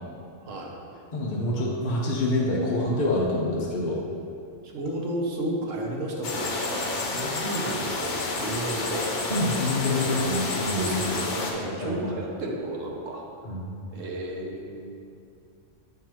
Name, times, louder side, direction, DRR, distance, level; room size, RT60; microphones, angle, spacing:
voice 1, 0.4-0.8 4.6-9.2 10.7-13.2 13.9-14.9, right 1 dB, 85° right, 0 dB, 1.2 m, -32 dB
voice 2, 1.1-4.0 9.3-10.9 11.4-12.0 13.4-13.7, left 1 dB, 40° left, -4 dB, 0.9 m, -26 dB
sound 1, 6.2-11.5, left 3 dB, 70° left, 1.1 m, -30 dB
7.6 x 5.6 x 3.0 m, 2.4 s
omnidirectional pair, 1.3 m